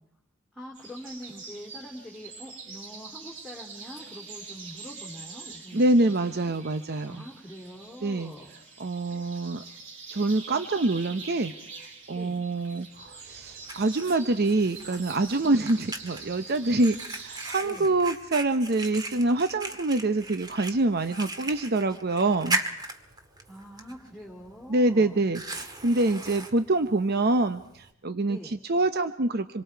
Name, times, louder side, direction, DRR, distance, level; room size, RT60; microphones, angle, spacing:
voice 1, 0.5-6.5 7.0-8.5 12.1-12.4 15.4-15.7 17.6-18.0 23.5-25.2 28.2-28.6, equal, ahead, -2 dB, 2.8 m, -44 dB
sound 1, 0.7-17.5, right 4 dB, 75° right, 7.4 m, -45 dB
voice 2, 5.7-7.2 8.0-8.3 8.8-9.6 10.1-11.5 12.1-22.6 24.7-29.6, right 2 dB, 50° right, 9 dB, 0.8 m, -25 dB
Fire, 12.9-27.9, right 2 dB, 20° right, 1.8 m, -38 dB
27.0 x 23.0 x 4.6 m, 0.76 s
head